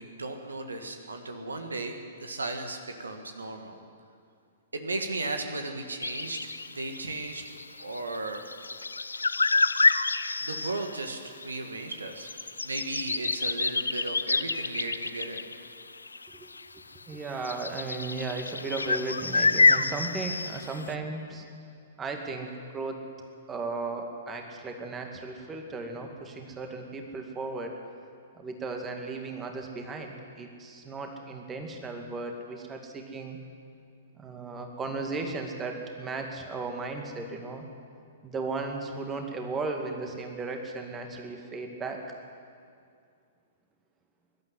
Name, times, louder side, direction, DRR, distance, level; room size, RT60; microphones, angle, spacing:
voice 1, 0.0-1.9 2.2-3.8 4.7-7.4 7.8-8.4 10.4-12.3 12.6-15.4, right 2 dB, 70° right, 5 dB, 1.8 m, -35 dB
sound 1, 6.0-11.1 11.4-11.5 11.9-16.6 17.3-20.9, left 3 dB, 75° left, 0.5 m, -28 dB
voice 2, 17.1-21.5 22.0-22.5 22.7-23.0 23.5-27.7 28.4-33.4 34.2-37.7 38.2-42.0, right 3 dB, 15° right, 3 dB, 2.2 m, -35 dB
22.0 x 12.0 x 9.8 m, 2.3 s
figure-of-eight pair, 110°, 0 cm